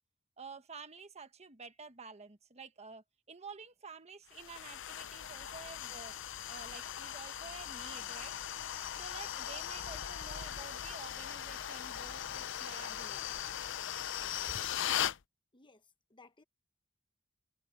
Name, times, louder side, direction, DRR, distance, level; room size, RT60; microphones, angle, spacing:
voice 1, 0.4-6.1 6.5-8.3 8.9-13.3, right 4 dB, 35° right, 1.3 m, -50 dB
sound 1, 4.3-15.2, left 10 dB, 65° left, 0.6 m, -39 dB
voice 2, 15.5-16.4, left 3 dB, 25° left, 1.1 m, -61 dB
head